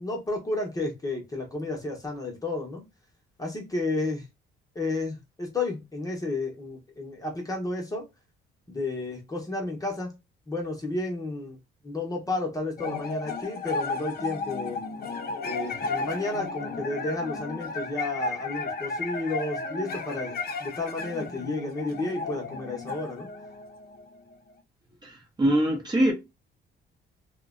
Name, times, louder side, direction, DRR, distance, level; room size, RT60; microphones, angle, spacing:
voice 1, 0.0-2.8 3.4-4.3 4.7-8.0 8.7-10.1 10.5-11.6 11.8-14.8 15.4-23.3, left 2 dB, 20° left, 0.9 m, -32 dB
sound 1, 12.8-24.3, left 4 dB, 50° left, 0.5 m, -34 dB
voice 2, 25.0-26.1, right 1 dB, 20° right, 0.7 m, -23 dB
2.5 x 2.1 x 2.4 m
cardioid pair, 90°, 20 cm